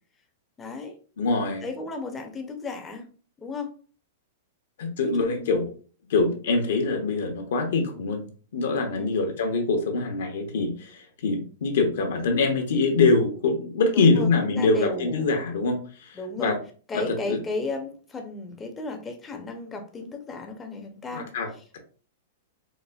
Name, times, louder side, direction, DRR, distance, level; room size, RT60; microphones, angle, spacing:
voice 1, 0.6-0.9 1.6-3.1 3.4-3.7 5.0-5.6 9.0-9.2 13.9-15.4 16.1-16.5 16.9-21.3, left 3 dB, 10° left, 3 dB, 0.5 m, -34 dB
voice 2, 1.2-1.6 4.8-5.7 6.1-8.3 8.5-16.6 16.9-17.4 21.1-21.8, left 3 dB, 70° left, 3 dB, 0.8 m, -24 dB
4.0 x 2.5 x 2.3 m, 0.40 s
supercardioid pair, 165°, 0 cm